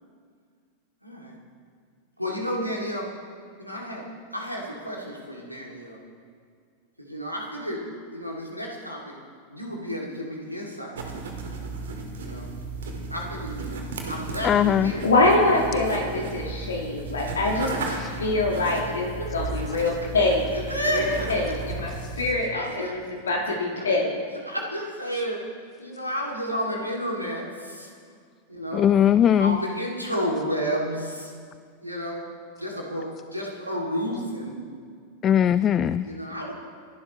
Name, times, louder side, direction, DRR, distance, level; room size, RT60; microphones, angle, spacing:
voice 1, 1.0-1.4 2.2-3.1 3.6-4.0 4.3-6.0 7.0-7.8 8.1-9.2 9.5-10.9 12.2-12.5 13.1-15.9 17.2-17.7 18.1-18.2 18.9-19.5 20.5-21.3 22.3-23.6 24.5-25.4 25.8-27.9 28.5-28.9 29.4-31.3 31.8-32.3 32.6-34.6 36.0-36.5, equal, 90° right, -2 dB, 2.6 m, -32 dB
sound 1, 11.0-22.3, right 3 dB, 65° right, 2.1 m, -34 dB
voice 2, 14.4-14.9 22.0-22.1 28.7-29.6 35.2-36.1, left 9 dB, 25° left, 16 dB, 0.3 m, -20 dB
voice 3, 15.0-17.7 18.2-19.1 19.3-20.5 20.9-21.9 22.2-24.1, left 2 dB, 70° left, 0 dB, 1.8 m, -24 dB
26.5 x 11.5 x 3.2 m, 2.1 s
figure-of-eight pair, 90°, 0 cm